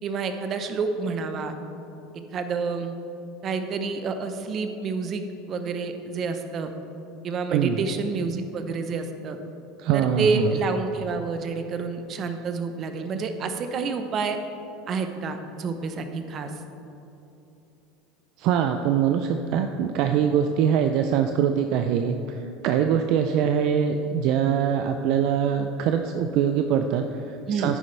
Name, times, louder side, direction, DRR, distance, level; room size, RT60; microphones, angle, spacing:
voice 1, 0.0-1.5 2.1-2.9 3.4-6.7 7.2-9.4 9.9-14.4 14.9-16.5 27.5-27.8, right 4 dB, 40° right, 7 dB, 0.8 m, -28 dB
voice 2, 9.8-10.5 18.4-27.8, right 8 dB, 60° right, 6 dB, 0.4 m, -23 dB
10.0 x 9.3 x 3.3 m, 2.9 s
supercardioid pair, 110°, 0 cm